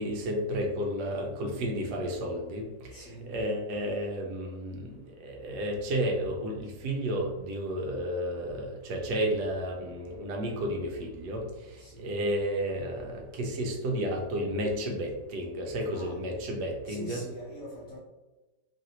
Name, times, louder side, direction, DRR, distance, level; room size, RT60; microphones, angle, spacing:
voice 1, 0.0-17.2, equal, 75° right, 1 dB, 1.1 m, -32 dB
voice 2, 2.9-3.3 11.8-12.2 15.9-16.3 16.9-18.0, equal, 50° left, -9 dB, 1.0 m, -44 dB
3.2 x 2.5 x 2.8 m, 1.1 s
omnidirectional pair, 1.9 m